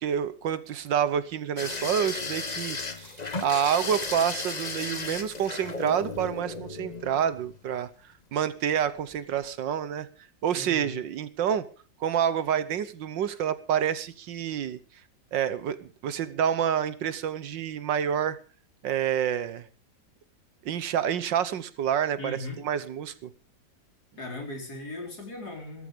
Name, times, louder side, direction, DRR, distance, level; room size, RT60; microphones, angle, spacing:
voice 1, 0.0-3.1 3.4-7.9 8.3-10.1 10.4-11.7 12.0-14.8 15.3-18.4 18.8-19.6 20.6-23.3, right 9 dB, 75° right, 15 dB, 1.7 m, -28 dB
sound 1, 1.6-7.6 8.8-9.2 9.4-9.5, left 3 dB, 25° left, 1.2 m, -35 dB
voice 2, 10.5-11.0 22.2-22.6 24.2-25.9, left 1 dB, 55° left, 2 dB, 5.0 m, -38 dB
16.5 x 14.0 x 5.1 m, 0.37 s
omnidirectional pair, 2.0 m